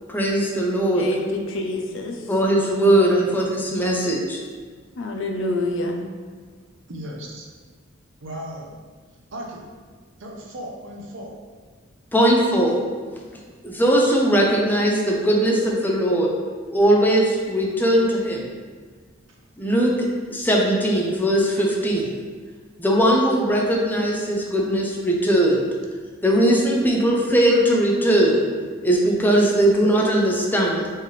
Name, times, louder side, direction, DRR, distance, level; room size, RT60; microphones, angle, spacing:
voice 1, 0.1-1.1 2.3-4.4 12.1-12.8 13.6-16.3 16.7-18.5 19.6-19.9 20.3-22.2 22.8-25.7 26.2-28.4 28.8-30.9, right 1 dB, 10° left, -2 dB, 0.6 m, -19 dB
voice 2, 0.9-2.3 5.0-6.0, left 2 dB, 65° left, 3 dB, 0.5 m, -27 dB
voice 3, 2.9-3.4 6.9-7.5 8.2-8.8 9.3-9.6 10.2-11.3, equal, 65° right, -1 dB, 0.8 m, -36 dB
4.5 x 3.4 x 3.2 m, 1.5 s
head